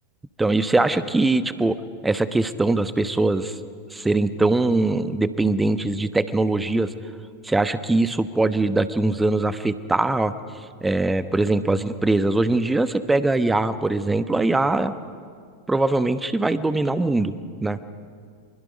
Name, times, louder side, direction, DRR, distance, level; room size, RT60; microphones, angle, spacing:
voice 1, 0.4-1.8 2.0-3.6 3.9-6.9 7.4-10.3 10.8-14.9 15.7-17.3 17.6-17.8, right 2 dB, 10° right, 13 dB, 1.0 m, -22 dB
25.5 x 23.5 x 5.2 m, 2.2 s
figure-of-eight pair, 90°, 0 cm